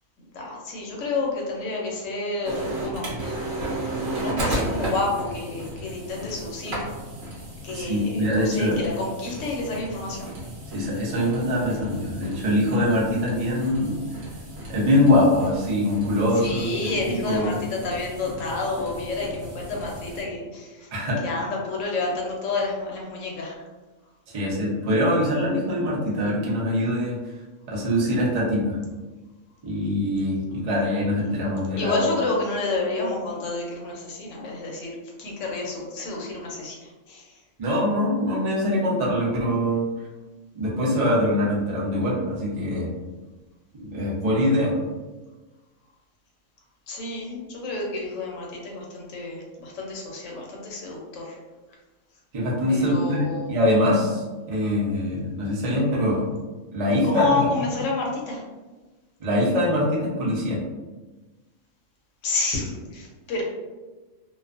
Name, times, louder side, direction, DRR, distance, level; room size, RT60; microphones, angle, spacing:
voice 1, 0.2-3.4 4.1-6.9 7.6-10.3 16.4-20.9 21.2-23.6 31.8-37.3 46.9-51.4 52.7-53.6 57.0-58.4 62.2-63.4, left 3 dB, 70° left, -2 dB, 0.9 m, -29 dB
sound 1, 2.4-20.2, right 1 dB, 65° right, 1.1 m, -34 dB
voice 2, 7.7-8.8 10.7-14.0 14.7-16.9 17.2-17.5 20.9-21.2 24.3-27.2 27.7-28.8 29.6-32.0 37.6-39.8 40.5-42.9 43.8-44.8 52.3-56.2 56.7-57.3 59.2-60.6, left 1 dB, 45° right, -5 dB, 0.5 m, -23 dB
2.4 x 2.3 x 2.4 m, 1.2 s
omnidirectional pair, 1.4 m